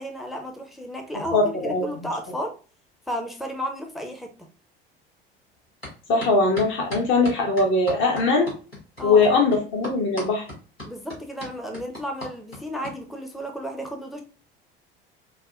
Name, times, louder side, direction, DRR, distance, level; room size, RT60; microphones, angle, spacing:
voice 1, 0.0-2.5 3.1-4.3 9.0-9.3 10.8-14.2, equal, ahead, 4 dB, 0.6 m, -33 dB
voice 2, 1.3-1.9 6.1-8.5 9.0-10.5, left 3 dB, 40° left, 1 dB, 1.0 m, -20 dB
sound 1, 5.8-5.9 6.2-12.9, left 1 dB, 90° left, 1.4 m, -37 dB
5.6 x 2.2 x 2.4 m, 0.36 s
figure-of-eight pair, 65°, 29 cm